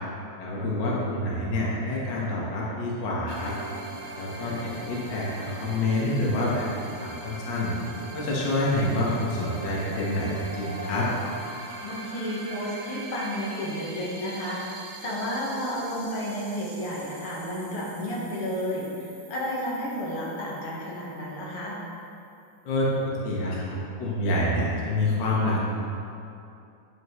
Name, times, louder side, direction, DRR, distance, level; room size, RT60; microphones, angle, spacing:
voice 1, 0.4-3.5 4.1-6.7 7.0-7.7 8.1-11.1 22.6-25.6, left 1 dB, 90° left, -5 dB, 0.9 m, -27 dB
sound 1, 3.3-21.7, right 3 dB, 80° right, 2.9 m, -41 dB
voice 2, 11.8-14.6 15.0-21.8, equal, 60° left, -5 dB, 1.5 m, -32 dB
9.6 x 8.9 x 3.2 m, 2.6 s
omnidirectional pair, 4.4 m